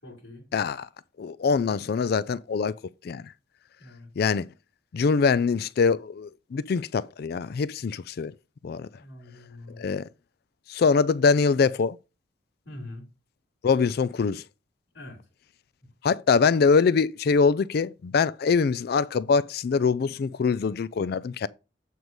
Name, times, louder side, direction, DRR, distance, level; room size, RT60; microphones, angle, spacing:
voice 1, 0.0-0.5 3.8-4.1 9.0-9.9 12.6-13.1 14.9-15.3 15.8-15.9, left 1 dB, 75° left, 3.0 m, -44 dB
voice 2, 0.5-0.9 1.2-2.7 3.0-3.2 4.2-4.5 4.9-8.3 8.6-8.9 9.8-10.0 10.7-12.0 13.6-14.4 16.0-21.5, left 5 dB, 55° left, 0.4 m, -23 dB
8.0 x 4.6 x 5.2 m
head